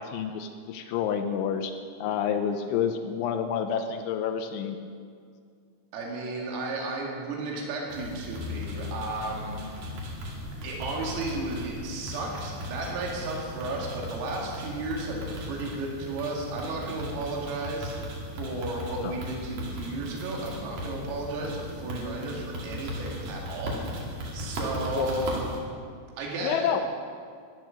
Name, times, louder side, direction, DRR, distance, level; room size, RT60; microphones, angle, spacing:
voice 1, 0.0-1.7 2.0-4.8 19.0-19.2 24.9-25.1 26.4-26.8, left 8 dB, 80° left, 7 dB, 2.8 m, -29 dB
voice 2, 5.9-9.9 10.6-25.5 26.2-26.7, right 2 dB, 80° right, -1 dB, 4.8 m, -34 dB
sound 1, 7.9-25.6, left 1 dB, 50° right, 3.6 m, -37 dB
15.0 x 11.0 x 6.4 m, 2.2 s
omnidirectional pair, 5.9 m